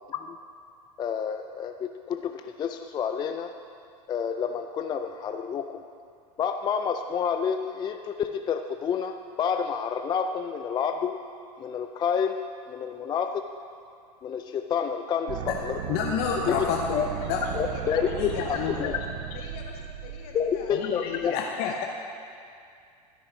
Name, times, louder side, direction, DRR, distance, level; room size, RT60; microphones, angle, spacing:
voice 1, 1.0-3.5 4.1-5.8 6.4-11.2 11.6-12.4 12.7-13.4 14.2-15.8 16.5-16.6 16.9-17.1 17.5-18.1 18.5-19.0 20.3-21.3, left 7 dB, 20° left, 7 dB, 0.4 m, -29 dB
sound 1, 15.3-21.3, right 9 dB, 60° right, 0.8 m, -36 dB
voice 2, 15.9-17.7 18.1-19.0 20.7-21.8, left 7 dB, 50° left, 1 dB, 0.8 m, -30 dB
voice 3, 16.6-18.8 19.3-21.9, left 5 dB, 65° left, 0 dB, 1.8 m, -45 dB
13.0 x 6.3 x 5.1 m, 2.4 s
hypercardioid pair, 105°, 20 cm